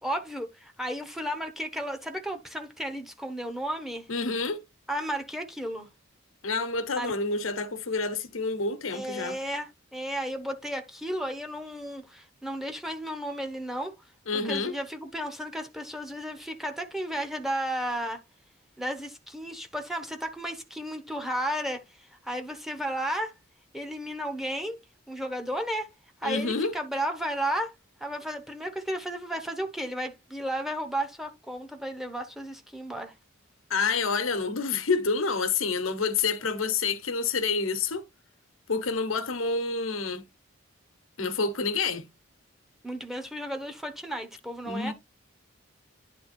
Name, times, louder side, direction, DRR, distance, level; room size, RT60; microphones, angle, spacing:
voice 1, 0.0-4.1 4.9-5.9 6.9-7.1 8.9-13.9 14.3-18.2 18.8-23.3 23.7-24.8 25.1-25.9 26.2-27.7 28.0-33.1 42.8-44.9, equal, ahead, 1.0 m, -33 dB
voice 2, 4.1-4.6 6.4-9.4 14.3-14.7 26.2-26.7 33.7-38.0 38.7-40.2 41.2-42.1 44.7-44.9, left 4 dB, 90° left, 1.1 m, -28 dB
10.0 x 3.5 x 4.3 m
head